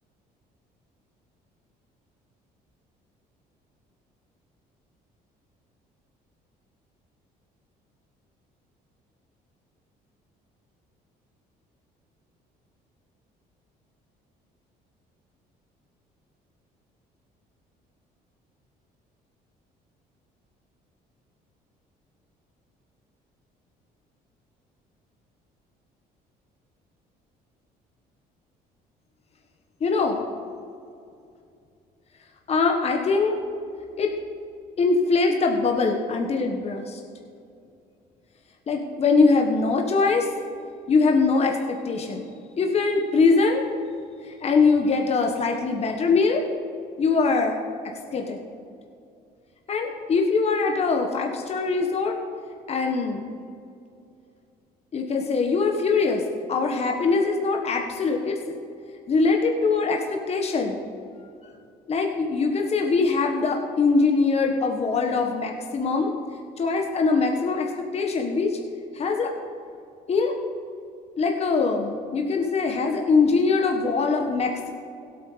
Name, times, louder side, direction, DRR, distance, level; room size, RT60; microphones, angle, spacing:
voice 1, 29.8-30.2 32.5-33.4 34.0-34.1 34.8-37.0 38.7-40.3 40.9-42.3 42.6-43.7 44.2-46.5 47.0-47.6 48.1-48.4 49.7-52.2 52.7-53.3 54.9-58.5 59.1-60.8 61.9-66.1 66.6-68.6 68.9-69.3 70.1-70.3 71.2-74.7, left 4 dB, 40° left, 3 dB, 1.4 m, -22 dB
16.5 x 8.5 x 5.0 m, 2.5 s
cardioid pair, 110°, 17 cm